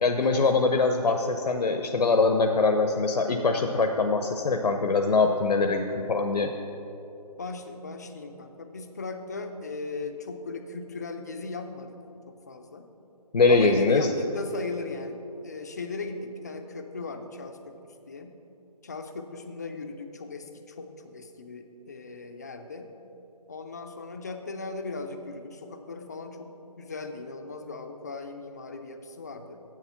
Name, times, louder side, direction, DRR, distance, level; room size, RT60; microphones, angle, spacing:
voice 1, 0.0-6.5 13.3-14.1, left 3 dB, 80° left, 5 dB, 0.7 m, -23 dB
voice 2, 7.4-12.9 13.5-18.4 18.8-22.9 23.5-29.6, left 3 dB, 25° left, 6 dB, 0.4 m, -38 dB
7.7 x 7.3 x 5.6 m, 2.9 s
figure-of-eight pair, 160°, 20 cm